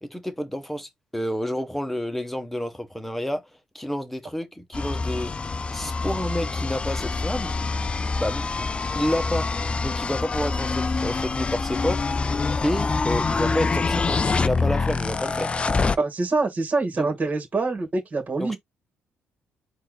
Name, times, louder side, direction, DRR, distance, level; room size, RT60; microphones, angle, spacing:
voice 1, 0.0-3.5 3.7-5.3 5.7-7.6 8.1-8.7 8.9-9.5 9.8-12.0 12.6-15.5 17.0-17.1 18.4-18.6, left 1 dB, 5° left, 1.3 m, -29 dB
sound 1, 4.7-16.0, left 4 dB, 25° left, 0.4 m, -26 dB
voice 2, 16.0-18.6, right 3 dB, 35° right, 2.1 m, -25 dB
4.4 x 2.8 x 3.9 m
cardioid pair, 95°, 4 cm